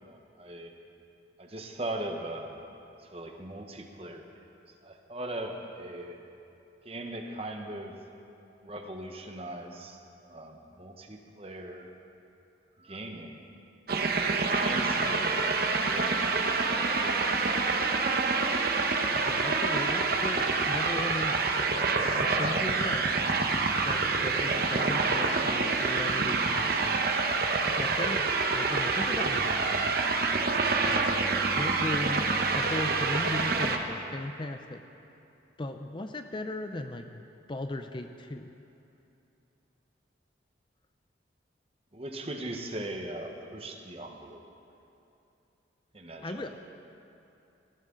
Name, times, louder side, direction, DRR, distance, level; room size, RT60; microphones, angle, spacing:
voice 1, 0.1-0.7 1.4-2.6 3.1-4.2 4.8-6.2 6.8-7.9 8.6-11.9 12.8-13.4 14.3-17.9 41.9-44.4 45.9-46.5, right 1 dB, 30° right, 3 dB, 1.1 m, -40 dB
sound 1, 13.9-33.8, right 4 dB, 55° right, 1.0 m, -27 dB
voice 2, 19.1-21.5 21.9-23.1 23.8-27.1 27.8-28.3 28.5-30.0 30.8-31.1 31.5-32.3 32.5-34.8 35.6-37.2 37.5-38.5 46.2-46.6, left 2 dB, 25° left, 7 dB, 0.5 m, -37 dB
18.5 x 15.0 x 3.9 m, 2.7 s
head